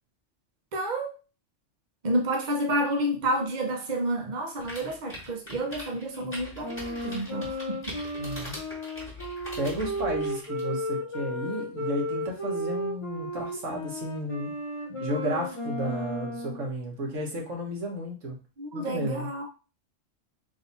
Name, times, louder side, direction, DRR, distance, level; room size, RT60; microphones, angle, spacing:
voice 1, 0.7-1.1 2.0-8.0 14.9-15.0 18.6-19.5, right 1 dB, 40° right, 2 dB, 0.9 m, -30 dB
sound 1, 4.6-10.6, left 1 dB, 10° left, 1.7 m, -42 dB
Wind instrument woodwind instrument, 6.6-16.6, equal, 30° left, 1.0 m, -34 dB
voice 2, 8.2-8.6 9.6-14.5 15.0-18.4 18.7-19.3, right 1 dB, 85° right, 0 dB, 1.6 m, -33 dB
3.9 x 2.7 x 4.0 m, 0.32 s
omnidirectional pair, 1.3 m